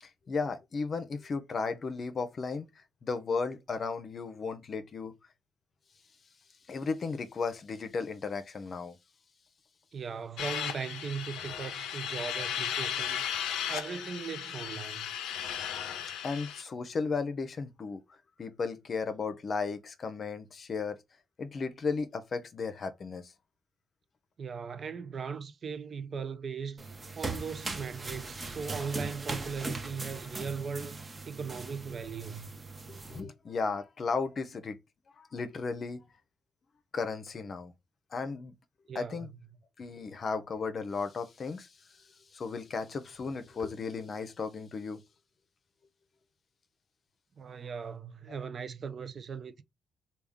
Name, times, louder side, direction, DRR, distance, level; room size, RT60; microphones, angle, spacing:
voice 1, 0.0-5.1 6.7-9.0 16.2-18.0 18.4-21.0 21.4-23.3 32.9-34.8 35.2-36.1 36.9-37.7 38.1-38.5 38.9-39.3 39.8-42.0 42.3-45.0 48.3-48.4, left 4 dB, 45° left, 0.6 m, -35 dB
voice 2, 9.9-15.1 24.4-26.9 27.2-32.6 38.9-39.3 47.4-49.6, right 6 dB, 45° right, 0.4 m, -39 dB
sound 1, 10.4-16.6, left 9 dB, 90° left, 0.5 m, -35 dB
sound 2, 26.8-33.2, right 3 dB, 25° right, 0.7 m, -39 dB
3.5 x 2.3 x 3.4 m
cardioid pair, 90°, 0 cm